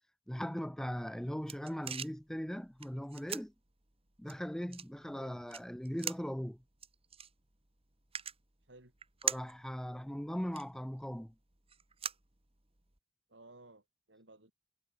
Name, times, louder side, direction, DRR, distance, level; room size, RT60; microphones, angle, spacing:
voice 1, 0.3-3.5 4.2-6.6 9.2-11.3, equal, 5° left, 0.6 m, -39 dB
sound 1, 0.9-13.0, right 8 dB, 30° right, 2.8 m, -45 dB
voice 2, 13.3-14.5, right 2 dB, 75° right, 6.4 m, -57 dB
head